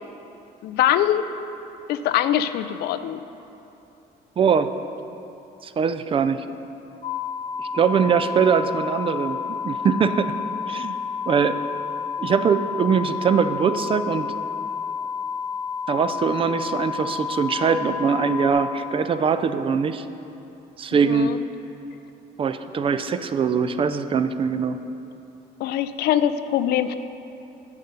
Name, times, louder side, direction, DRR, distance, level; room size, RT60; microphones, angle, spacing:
voice 1, 0.6-1.3 1.9-3.2 21.0-21.4 25.6-27.0, left 11 dB, 75° left, 12 dB, 0.4 m, -22 dB
voice 2, 4.4-4.7 5.6-6.5 7.6-10.4 10.7-11.0 11.3-11.6 12.2-14.3 15.9-20.1 20.8-21.3 22.4-24.8, right 6 dB, 30° right, 11 dB, 0.4 m, -22 dB
sound 1, 7.0-18.5, left 6 dB, 30° left, 1.1 m, -30 dB
8.2 x 5.2 x 6.7 m, 2.9 s
cardioid pair, 110°, 17 cm